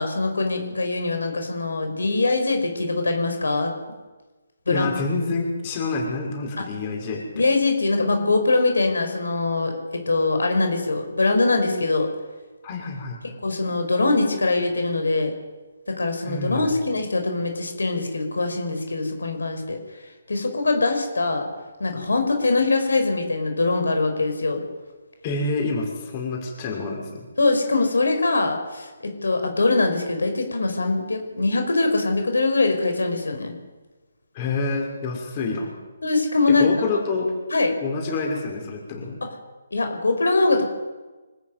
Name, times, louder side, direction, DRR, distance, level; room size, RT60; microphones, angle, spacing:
voice 1, 0.0-3.7 4.7-4.9 6.6-6.7 7.4-12.1 13.4-15.4 15.9-19.8 20.3-21.5 21.8-24.6 27.4-33.5 36.0-36.7 37.5-37.7 39.7-40.6, left 3 dB, 90° left, 5 dB, 5.6 m, -22 dB
voice 2, 4.7-7.4 12.6-13.2 16.2-16.7 25.2-27.3 34.3-35.7 36.6-37.3 37.8-39.2, left 3 dB, 30° left, 1 dB, 6.0 m, -27 dB
25.0 x 14.5 x 9.5 m, 1.2 s
hypercardioid pair, 155°, 0 cm